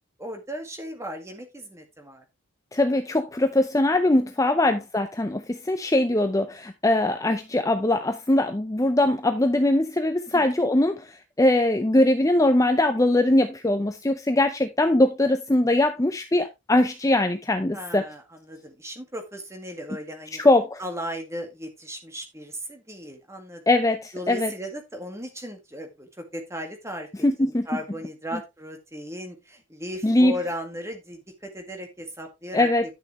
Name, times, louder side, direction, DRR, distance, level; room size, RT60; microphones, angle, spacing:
voice 1, 0.2-2.2 4.2-4.3 10.3-10.4 17.7-20.4 20.8-23.6 24.1-27.1 27.4-32.7, equal, 15° right, 1.8 m, -36 dB
voice 2, 2.7-18.0 20.4-20.8 23.7-24.5 27.2-27.7 30.0-30.4 32.5-32.8, left 1 dB, 15° left, 0.5 m, -21 dB
11.0 x 6.5 x 3.1 m
head